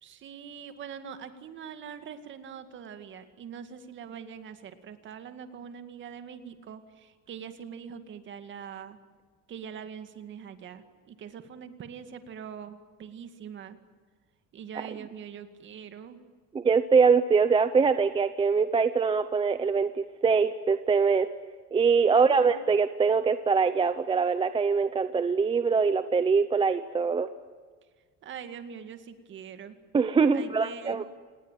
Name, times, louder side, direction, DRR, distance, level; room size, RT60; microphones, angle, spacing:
voice 1, 0.0-9.0 9.5-13.8 14.5-16.2 22.1-22.5 28.2-29.8 30.3-31.0, right 7 dB, 40° right, 9 dB, 2.2 m, -43 dB
voice 2, 16.5-19.9 20.2-21.3 21.7-27.3 29.9-31.0, right 5 dB, 15° right, 11 dB, 0.7 m, -23 dB
28.0 x 20.0 x 9.2 m, 1.5 s
cardioid pair, 175°, 29 cm